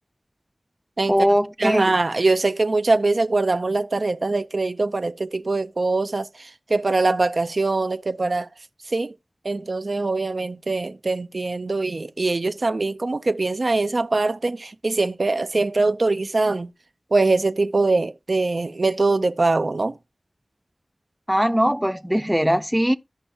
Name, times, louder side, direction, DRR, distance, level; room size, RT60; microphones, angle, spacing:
voice 1, 1.1-1.9 21.3-22.9, equal, 5° right, 0.5 m, -20 dB
voice 2, 1.6-8.5 8.9-9.1 9.4-16.7 17.1-20.0, right 3 dB, 65° right, 0.5 m, -22 dB
14.5 x 5.4 x 2.8 m
wide cardioid pair, 60°, 0 cm